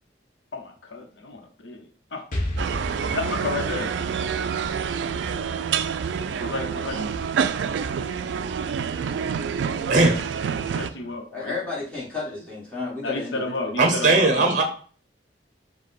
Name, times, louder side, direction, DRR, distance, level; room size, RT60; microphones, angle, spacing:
voice 1, 0.5-2.2 3.1-3.9 6.4-7.0 10.7-11.5 13.0-14.6, left 3 dB, 85° left, 4 dB, 0.9 m, -32 dB
Explosion, 2.3-6.1, left 1 dB, 45° left, 0.8 m, -34 dB
sound 1, 2.6-10.9, right 6 dB, 80° right, 0.3 m, -27 dB
voice 2, 9.9-10.2 13.8-14.6, right 3 dB, 45° right, 4 dB, 0.7 m, -19 dB
voice 3, 10.6-14.2, left 3 dB, 5° left, -8 dB, 1.6 m, -34 dB
5.1 x 2.2 x 4.1 m, 0.44 s
head